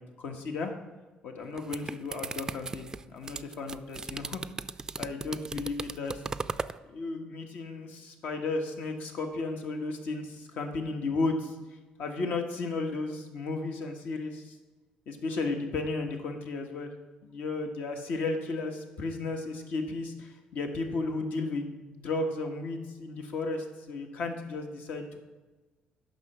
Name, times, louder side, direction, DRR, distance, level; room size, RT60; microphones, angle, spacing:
voice 1, 0.2-0.7 1.2-4.4 5.0-6.2 6.9-11.5 12.0-14.5 15.1-16.9 17.2-25.2, left 3 dB, 70° left, 4 dB, 1.4 m, -34 dB
sound 1, 1.4-6.8, right 4 dB, 20° right, 0.3 m, -37 dB
9.5 x 5.8 x 6.0 m, 1.2 s
cardioid pair, 115°, 3 cm